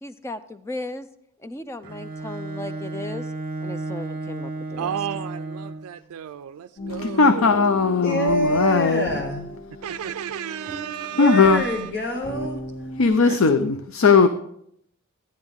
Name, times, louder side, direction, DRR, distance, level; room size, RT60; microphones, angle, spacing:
voice 1, 0.0-1.1 1.4-3.3 3.6-4.9, left 1 dB, 10° left, 11 dB, 0.4 m, -36 dB
Bowed string instrument, 1.8-6.0, right 2 dB, 40° right, 0.9 m, -33 dB
voice 2, 4.8-7.7 8.3-8.4 9.8-11.9 13.2-13.4, right 9 dB, 90° right, 9 dB, 0.3 m, -33 dB
sound 1, 6.8-13.1, equal, 30° left, 2.2 m, -37 dB
voice 3, 6.9-9.1 11.2-11.7 13.0-14.3, left 4 dB, 70° left, 11 dB, 0.5 m, -18 dB
voice 4, 8.0-9.5 11.1-12.6, right 1 dB, 50° left, 2 dB, 0.9 m, -25 dB
12.5 x 9.8 x 3.6 m, 0.73 s
head